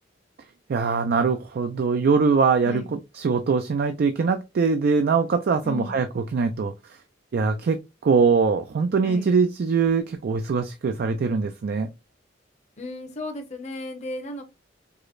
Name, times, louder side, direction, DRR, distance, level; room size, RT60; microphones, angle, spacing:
voice 1, 0.7-2.8 3.2-6.7 7.3-11.9, right 5 dB, 55° right, 0.4 m, -22 dB
voice 2, 5.6-6.0 9.0-9.3 12.8-14.4, left 2 dB, 40° left, 0.8 m, -34 dB
4.8 x 2.1 x 2.4 m
head